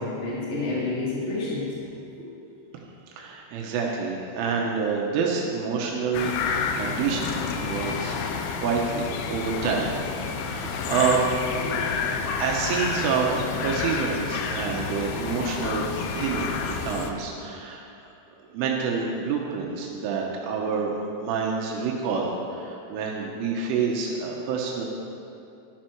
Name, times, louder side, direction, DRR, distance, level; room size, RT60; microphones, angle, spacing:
voice 1, 0.0-1.8 11.6-11.9, left 2 dB, 20° left, -7 dB, 2.5 m, -29 dB
voice 2, 3.2-6.3 6.8-9.9 10.4-11.2 12.4-17.9 18.5-24.9, right 5 dB, 80° right, -1 dB, 3.6 m, -28 dB
sound 1, 6.1-17.1, left 5 dB, 85° left, 2.2 m, -29 dB
13.0 x 12.5 x 4.6 m, 2.7 s
omnidirectional pair, 5.6 m